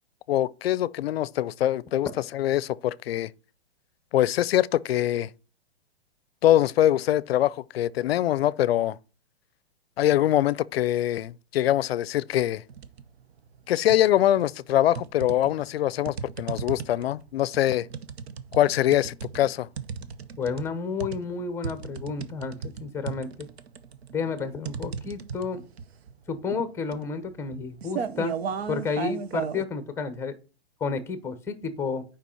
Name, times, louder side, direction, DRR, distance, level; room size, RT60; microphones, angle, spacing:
voice 1, 0.3-3.3 4.1-5.3 6.4-9.0 10.0-12.6 13.7-17.9 18.5-19.7, left 12 dB, 75° left, 0.5 m, -23 dB
sound 1, 12.7-13.1 13.5-14.4 14.9-29.6, right 6 dB, 75° right, 0.9 m, -35 dB
voice 2, 20.4-23.5 24.1-25.6 26.3-28.4 28.7-30.3 30.8-32.0, left 5 dB, 10° left, 0.8 m, -31 dB
8.2 x 5.1 x 4.3 m
hypercardioid pair, 145°, 31 cm